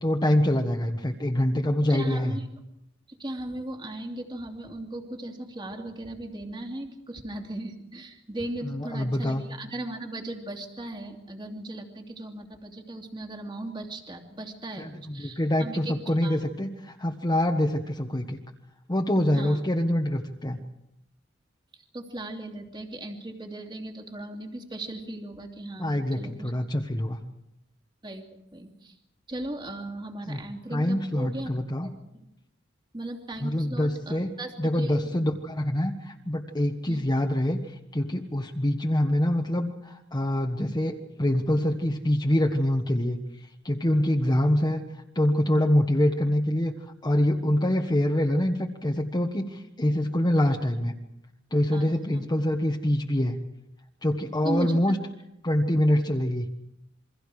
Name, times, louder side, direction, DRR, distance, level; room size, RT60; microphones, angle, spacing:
voice 1, 0.0-2.3 8.6-9.5 14.8-18.4 18.9-20.6 25.8-27.2 30.2-30.4 30.7-31.9 33.4-34.3 34.6-43.2 43.6-51.0 51.5-53.4 54.0-55.0 55.4-56.5, left 1 dB, 20° left, 1 dB, 1.3 m, -25 dB
voice 2, 1.9-2.4 3.1-15.9 16.2-16.4 19.3-19.6 21.9-26.5 28.0-28.9 29.3-31.5 31.8-32.3 32.9-35.1 36.9-37.0 51.7-52.3 54.4-54.8, right 1 dB, 25° right, 3 dB, 2.7 m, -37 dB
28.5 x 23.5 x 4.9 m, 0.82 s
head